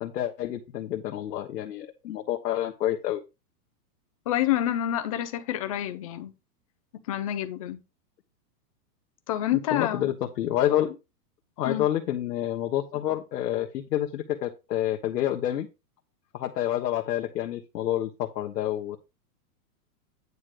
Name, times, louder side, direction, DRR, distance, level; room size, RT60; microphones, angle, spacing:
voice 1, 0.0-3.2 9.7-11.0 11.6-15.7 16.3-19.0, left 12 dB, 75° left, 1.3 m, -28 dB
voice 2, 4.3-6.3 7.1-7.8 9.3-10.1 11.6-11.9, left 12 dB, 25° left, 0.4 m, -28 dB
9.7 x 3.3 x 6.5 m
hypercardioid pair, 155°, 49 cm